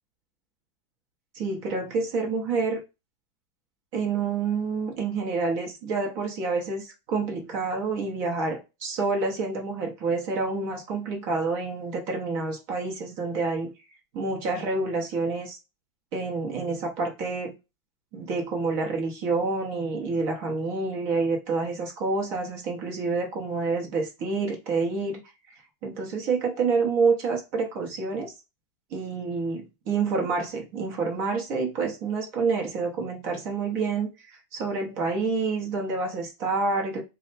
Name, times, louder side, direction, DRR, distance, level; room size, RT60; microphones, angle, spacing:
voice 1, 1.3-2.8 3.9-13.7 14.1-15.6 16.1-17.5 18.1-25.2 25.5-25.6 25.8-28.3 28.9-37.0, right 4 dB, 55° right, 1.2 m, -28 dB
4.3 x 2.1 x 3.9 m
omnidirectional pair, 2.0 m